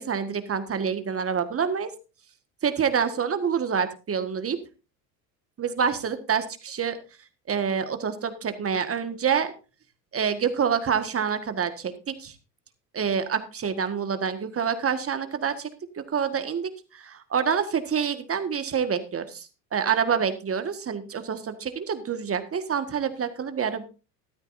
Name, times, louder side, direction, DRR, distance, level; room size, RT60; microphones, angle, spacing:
voice 1, 0.0-1.9 2.6-4.6 5.6-7.0 7.5-9.5 10.1-12.4 12.9-15.7 16.0-23.8, right 7 dB, 30° right, 9 dB, 1.7 m, -27 dB
14.0 x 12.5 x 2.7 m, 0.32 s
hypercardioid pair, 70°, 48 cm